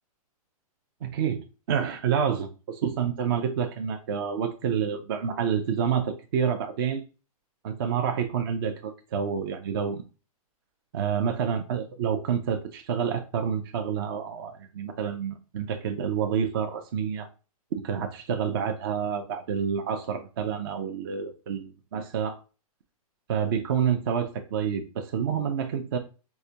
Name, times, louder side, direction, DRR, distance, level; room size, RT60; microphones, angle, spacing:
voice 1, 1.0-7.0 7.6-10.0 10.9-17.3 17.7-22.4 23.3-26.0, right 7 dB, 40° right, 0.4 m, -28 dB
4.7 x 2.2 x 2.7 m
hypercardioid pair, 165°, 19 cm